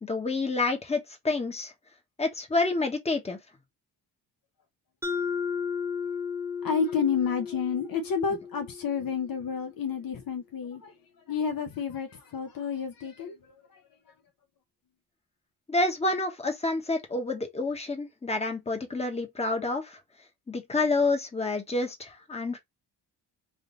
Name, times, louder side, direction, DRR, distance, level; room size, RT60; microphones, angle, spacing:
voice 1, 0.0-1.7 2.2-3.4 15.7-20.0 20.5-22.6, left 3 dB, 15° left, 1.1 m, -28 dB
Mallet percussion, 5.0-9.6, left 6 dB, 5° right, 0.8 m, -34 dB
voice 2, 6.6-10.9 11.3-13.8, left 6 dB, 55° left, 0.8 m, -30 dB
3.6 x 2.7 x 3.8 m
cardioid pair, 135°, 41 cm